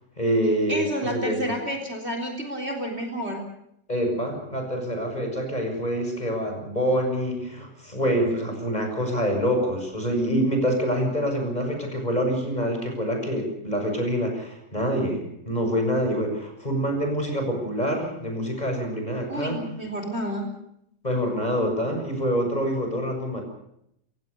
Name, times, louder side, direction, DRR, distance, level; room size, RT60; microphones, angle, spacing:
voice 1, 0.2-0.8 1.1-1.5 3.9-19.6 21.0-23.4, equal, 20° left, 4 dB, 6.9 m, -26 dB
voice 2, 0.7-3.4 19.3-20.5, equal, 35° right, 4 dB, 4.0 m, -30 dB
28.5 x 16.5 x 6.8 m, 0.76 s
omnidirectional pair, 1.9 m